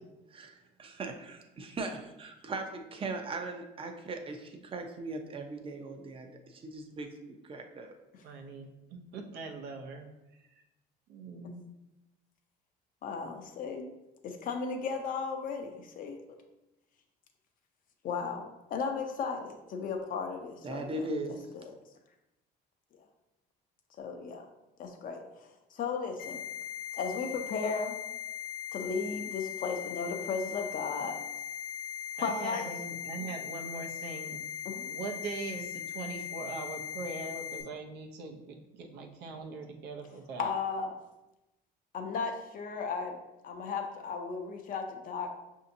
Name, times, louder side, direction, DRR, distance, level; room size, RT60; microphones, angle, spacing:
voice 1, 0.3-7.9 20.6-21.4, right 2 dB, 30° right, 5 dB, 0.6 m, -39 dB
voice 2, 8.2-10.1 10.5-10.6 11.1-11.6 32.2-34.4 34.8-40.5, right 3 dB, 85° right, 2 dB, 0.6 m, -41 dB
voice 3, 13.0-13.9 14.2-16.2 18.0-21.7 24.0-24.5 24.8-26.4 26.9-28.0 28.7-31.2 32.2-32.7 34.6-35.0 40.4-40.9 41.9-43.2 43.4-45.3, left 5 dB, 55° left, 4 dB, 0.6 m, -35 dB
sound 1, 26.2-37.6, left 9 dB, 75° left, 1.0 m, -39 dB
5.5 x 2.7 x 2.6 m, 0.96 s
cardioid pair, 110°, 17 cm